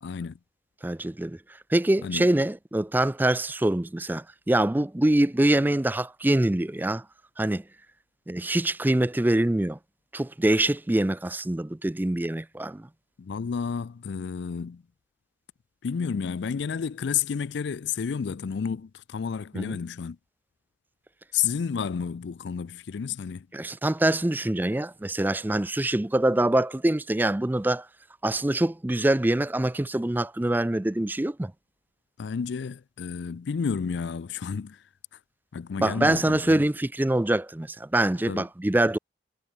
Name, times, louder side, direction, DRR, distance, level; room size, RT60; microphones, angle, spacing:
voice 1, 0.0-0.4 2.0-2.3 13.2-14.8 15.8-20.2 21.3-23.5 32.2-34.8 35.5-36.6 38.3-38.4, left 6 dB, 65° left, 0.4 m, -31 dB
voice 2, 0.8-1.4 1.7-7.0 7.4-7.6 8.3-9.8 10.1-12.9 19.5-19.8 23.5-27.9 28.2-31.5 35.8-39.0, right 1 dB, 10° right, 0.4 m, -24 dB
head